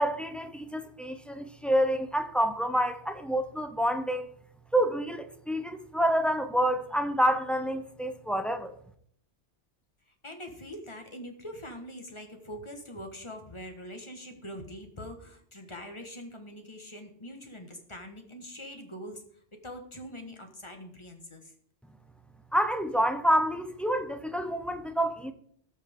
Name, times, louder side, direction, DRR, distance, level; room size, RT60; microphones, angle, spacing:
voice 1, 0.0-4.3 4.7-8.7 22.5-25.3, equal, ahead, 0.4 m, -28 dB
voice 2, 10.1-21.5, equal, 25° left, 1.4 m, -43 dB
17.0 x 6.1 x 3.6 m
omnidirectional pair, 1.2 m